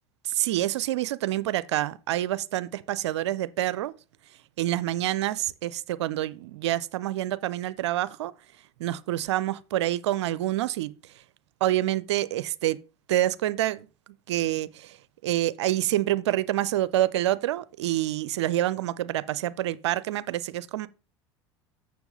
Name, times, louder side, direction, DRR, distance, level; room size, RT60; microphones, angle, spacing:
voice 1, 0.2-3.9 4.6-8.3 8.8-10.9 11.6-12.8 13.1-13.9 14.3-15.0 15.2-20.9, right 14 dB, 75° right, 0.5 m, -27 dB
7.0 x 6.3 x 5.3 m
hypercardioid pair, 75°, 15 cm